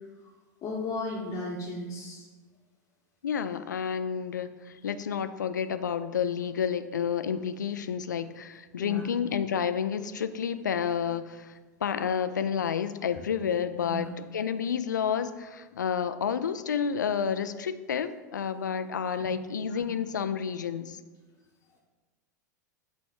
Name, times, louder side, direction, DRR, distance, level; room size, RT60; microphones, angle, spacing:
voice 1, 0.6-2.3 8.8-9.1 13.1-13.2 13.7-14.1 19.7-19.8, left 2 dB, 30° left, -3 dB, 1.0 m, -35 dB
voice 2, 3.2-4.5 4.8-11.5 11.8-21.0, left 7 dB, 70° left, 11 dB, 0.4 m, -30 dB
8.4 x 3.1 x 4.9 m, 1.3 s
figure-of-eight pair, 85°, 10 cm